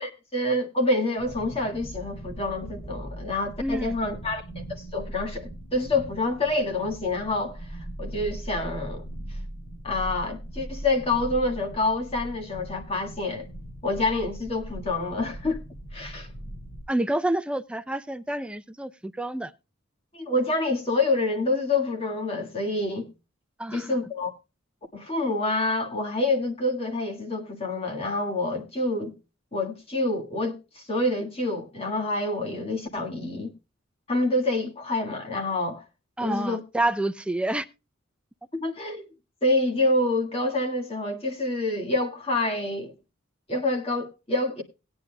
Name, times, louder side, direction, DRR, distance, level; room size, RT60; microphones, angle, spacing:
voice 1, 0.0-9.4 9.8-13.5 13.8-15.6 15.9-16.3 20.1-23.1 23.7-24.3 24.9-29.2 29.5-33.5 34.1-35.8 36.2-36.6 38.5-39.1 39.4-42.9 43.5-44.6, left 2 dB, 30° left, 1.7 m, -27 dB
sound 1, 1.2-16.8, right 1 dB, 85° left, 6.9 m, -39 dB
voice 2, 3.6-3.9 16.9-19.5 23.6-23.9 36.2-37.7, right 1 dB, 5° right, 0.4 m, -28 dB
19.0 x 9.6 x 2.2 m
head